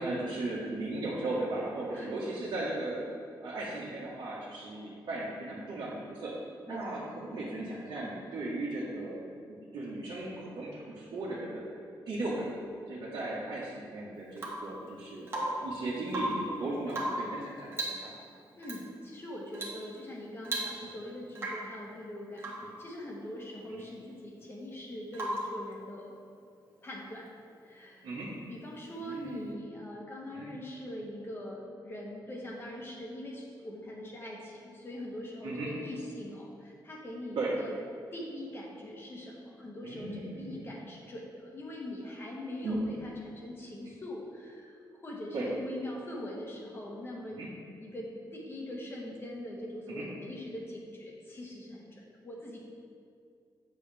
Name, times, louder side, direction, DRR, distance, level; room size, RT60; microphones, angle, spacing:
voice 1, 0.0-3.0 3.4-6.3 6.7-11.6 12.1-12.5 12.9-18.1 20.8-20.9 23.7-23.8 28.0-28.3 29.0-29.5 30.3-30.5 35.4-35.7 37.3-37.5 39.8-40.7 42.6-42.7 45.3-45.5 47.4-47.5 49.9-50.1, right 2 dB, 70° right, -8 dB, 1.5 m, -37 dB
voice 2, 6.7-7.1 18.5-26.1 26.8-27.3 27.6-28.1 28.5-37.7 38.1-47.4 47.8-52.6, left 1 dB, 30° left, -2 dB, 1.3 m, -42 dB
Rain / Water tap faucet / Drip, 14.4-14.7 15.3-15.7 16.0-16.5 16.9-17.3 17.7-18.1 18.6-18.8 19.5-19.8 20.1-20.2 20.4-21.0 21.3-21.7 22.4-22.7 25.1-25.6 27.5-27.6, right 1 dB, 30° right, 1.4 m, -35 dB
8.8 x 6.7 x 3.5 m, 2.3 s
wide cardioid pair, 155°, 8 cm